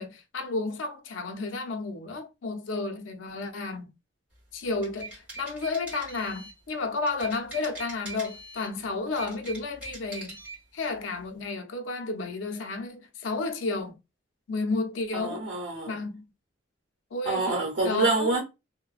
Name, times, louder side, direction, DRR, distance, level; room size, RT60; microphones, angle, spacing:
voice 1, 0.0-3.9 4.5-10.4 10.7-14.0 14.5-15.4 15.9-16.3 17.1-18.4, left 3 dB, 85° left, 0.5 m, -32 dB
sound 1, 4.6-6.6 7.1-8.7 9.1-10.6, right 2 dB, 5° right, 1.6 m, -42 dB
voice 2, 15.1-15.9 17.3-18.4, right 3 dB, 80° right, 0.8 m, -26 dB
3.0 x 2.1 x 2.4 m
head